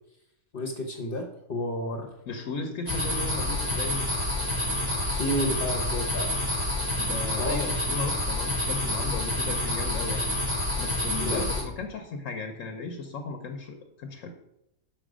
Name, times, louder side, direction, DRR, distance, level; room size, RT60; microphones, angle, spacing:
voice 1, 0.5-2.1 5.1-6.3 7.4-7.6 11.2-11.5, left 1 dB, 45° left, 2 dB, 1.0 m, -31 dB
voice 2, 2.3-4.0 7.0-10.3 10.8-14.3, left 4 dB, 70° left, 5 dB, 1.1 m, -36 dB
sound 1, 2.9-11.6, left 1 dB, 35° right, 2.8 m, -28 dB
6.3 x 6.1 x 4.9 m, 0.83 s
omnidirectional pair, 1.4 m